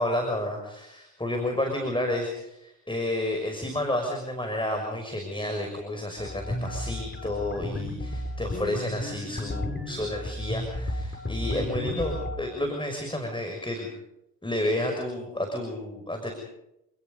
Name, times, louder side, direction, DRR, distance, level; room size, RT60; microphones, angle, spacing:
voice 1, 0.0-13.9 14.4-16.3, left 1 dB, 10° left, 3 dB, 6.2 m, -30 dB
sound 1, 6.2-12.4, left 1 dB, 30° left, 6.3 m, -33 dB
29.0 x 19.5 x 5.4 m, 0.86 s
hypercardioid pair, 40°, 39 cm